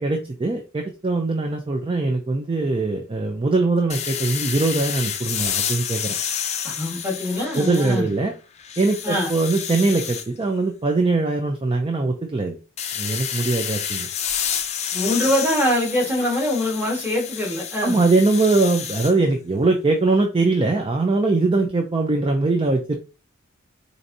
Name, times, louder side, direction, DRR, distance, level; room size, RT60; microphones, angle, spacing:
voice 1, 0.0-6.1 7.5-8.3 8.8-12.6 13.0-14.1 15.0-15.1 17.8-23.0, right 3 dB, 25° right, 3 dB, 0.4 m, -21 dB
sound 1, 3.9-8.2 8.6-10.3 12.8-19.1, left 8 dB, 35° left, 0.4 m, -29 dB
voice 2, 6.6-8.1 9.0-9.3 14.9-18.0, left 1 dB, 10° right, -3 dB, 1.4 m, -23 dB
4.5 x 2.6 x 2.6 m, 0.32 s
head